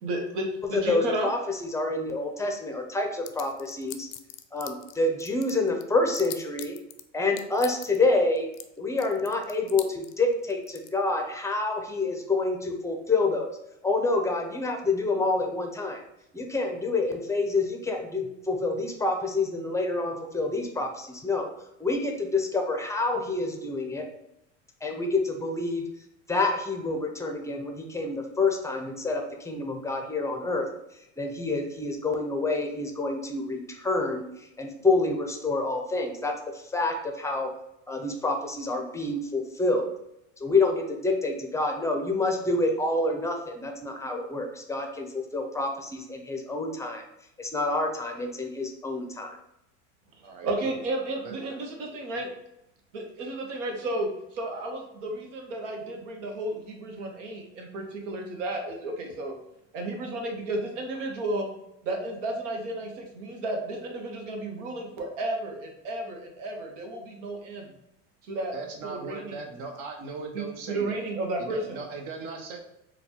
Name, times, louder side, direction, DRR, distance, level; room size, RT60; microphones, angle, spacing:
voice 1, 0.0-1.3 50.2-51.2 51.5-52.3 52.9-59.3 59.7-61.5 61.8-67.7 68.2-68.5 68.8-69.5 70.3-71.8, right 1 dB, 80° right, 2 dB, 1.0 m, -33 dB
voice 2, 0.7-4.1 4.5-6.8 7.1-8.5 8.8-13.5 13.8-16.0 16.3-21.5 21.8-24.1 24.8-25.8 26.3-30.7 31.2-37.5 37.9-39.9 40.4-47.0 47.4-49.4, left 2 dB, 10° left, 3 dB, 0.5 m, -27 dB
sound 1, 3.3-4.9 5.2-7.0 7.4-8.0 8.4-8.6 9.0-10.9, left 14 dB, 55° left, 0.5 m, -40 dB
voice 3, 50.2-50.8 68.5-71.0 71.5-72.6, right 4 dB, 60° right, 3 dB, 0.9 m, -38 dB
4.0 x 2.3 x 2.9 m, 0.83 s
hypercardioid pair, 95°, 37 cm